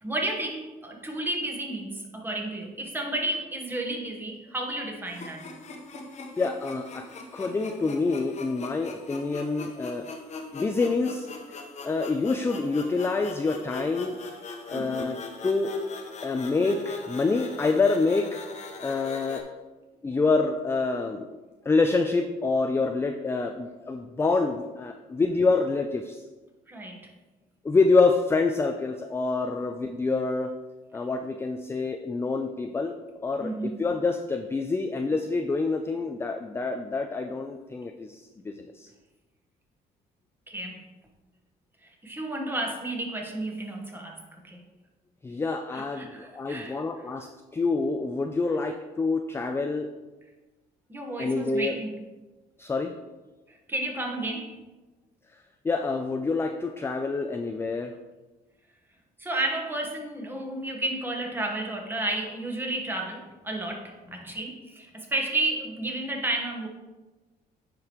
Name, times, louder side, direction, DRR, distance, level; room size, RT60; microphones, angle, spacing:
voice 1, 0.0-5.5 14.7-15.1 26.7-27.1 33.4-33.8 40.5-40.9 41.8-44.6 45.7-46.8 50.9-52.0 53.5-54.5 59.2-66.7, right 2 dB, 10° right, 1 dB, 1.2 m, -32 dB
sound 1, 5.1-19.4, left 3 dB, 40° left, 1.0 m, -41 dB
voice 2, 6.4-7.1 7.3-10.1 10.5-11.3 11.8-14.2 14.7-15.7 16.2-18.4 18.8-19.4 20.0-21.4 21.7-26.2 27.6-30.5 30.9-38.9 45.2-47.3 47.5-49.9 51.2-51.8 52.6-52.9 55.6-57.9, left 3 dB, 15° left, 5 dB, 0.4 m, -27 dB
9.4 x 5.0 x 3.0 m, 1.2 s
cardioid pair, 110°, 17 cm